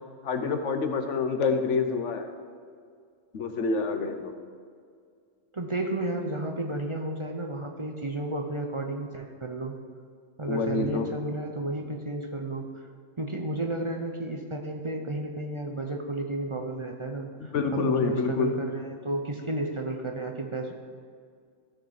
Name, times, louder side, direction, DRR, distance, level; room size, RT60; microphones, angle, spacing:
voice 1, 0.2-2.3 3.3-4.3 10.4-11.1 17.4-18.5, left 5 dB, 85° left, 7 dB, 1.3 m, -27 dB
voice 2, 5.5-9.7 10.4-12.7 13.2-20.7, right 2 dB, 30° right, 2 dB, 0.8 m, -32 dB
14.0 x 6.5 x 4.9 m, 2.1 s
omnidirectional pair, 1.2 m